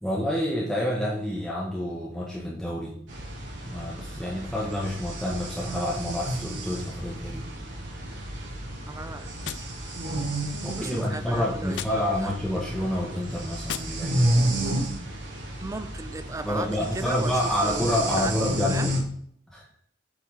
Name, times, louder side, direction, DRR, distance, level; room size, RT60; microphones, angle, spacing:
voice 1, 0.0-2.9 3.7-7.4 10.6-14.3 16.4-19.0 19.5-19.6, left 1 dB, ahead, -5 dB, 1.5 m, -28 dB
sound 1, 3.1-19.0, right 1 dB, 70° right, 3.1 m, -31 dB
voice 2, 8.9-9.5 10.8-12.3 15.6-16.7 16.9-17.3 17.6-18.9, right 2 dB, 15° right, 12 dB, 0.5 m, -36 dB
Gunshot gunfire, 9.4-10.5 11.7-12.5 13.6-14.5, left 9 dB, 65° left, 0.5 m, -40 dB
8.6 x 5.7 x 4.1 m, 0.63 s
head